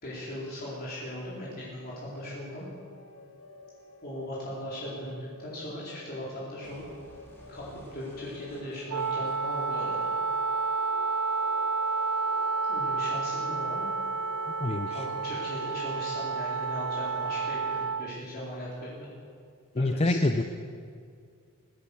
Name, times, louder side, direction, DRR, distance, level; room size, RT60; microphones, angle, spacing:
voice 1, 0.0-2.7 4.0-6.8 7.5-10.0 12.7-13.9 14.9-19.1 19.7-20.2, left 1 dB, 45° left, -7 dB, 3.9 m, -38 dB
sound 1, 0.9-18.7, left 3 dB, 75° left, 1.8 m, -52 dB
sound 2, 6.6-10.6, equal, 10° left, 3.0 m, -54 dB
Wind instrument woodwind instrument, 8.9-18.1, right 4 dB, 80° right, 0.9 m, -30 dB
voice 2, 14.6-15.0 19.7-20.4, left 2 dB, 30° left, 7 dB, 0.5 m, -26 dB
19.5 x 10.5 x 7.0 m, 2.2 s
head